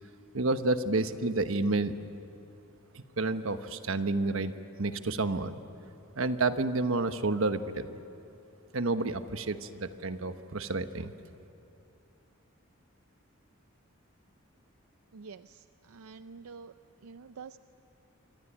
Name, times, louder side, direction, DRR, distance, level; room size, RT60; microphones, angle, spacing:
voice 1, 0.3-1.9 2.9-4.5 4.8-5.5 6.1-8.0 8.7-11.1, right 2 dB, 70° right, 9 dB, 1.2 m, -30 dB
voice 2, 15.1-16.7 17.0-17.6, right 5 dB, 90° right, 11 dB, 0.5 m, -47 dB
26.0 x 25.0 x 8.9 m, 2.7 s
head